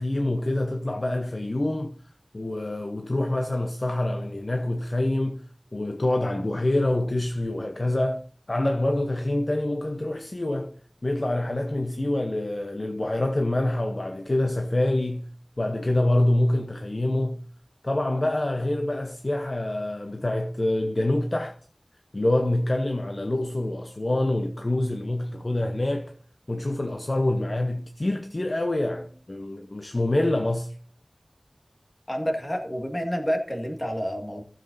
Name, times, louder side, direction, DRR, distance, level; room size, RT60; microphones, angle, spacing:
voice 1, 0.0-2.0 2.3-8.2 8.5-10.7 11.0-15.3 15.6-17.4 17.8-21.5 22.1-26.1 26.5-30.7, left 1 dB, 50° left, 0.7 m, -26 dB
voice 2, 32.1-34.4, equal, 30° left, 1.9 m, -29 dB
15.5 x 7.4 x 2.7 m
wide cardioid pair, 55°, 0 cm